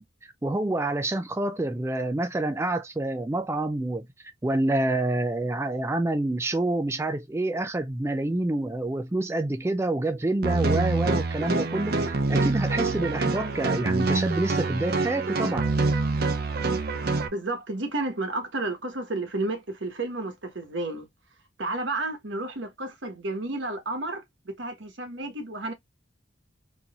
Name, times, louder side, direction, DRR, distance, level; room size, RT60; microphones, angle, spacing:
voice 1, 0.0-15.7, right 2 dB, 15° right, 0.3 m, -27 dB
sound 1, 10.4-17.3, right 3 dB, 50° right, 0.6 m, -26 dB
voice 2, 17.3-21.1 21.6-25.7, right 2 dB, 70° right, 1.2 m, -31 dB
3.9 x 2.9 x 2.4 m
head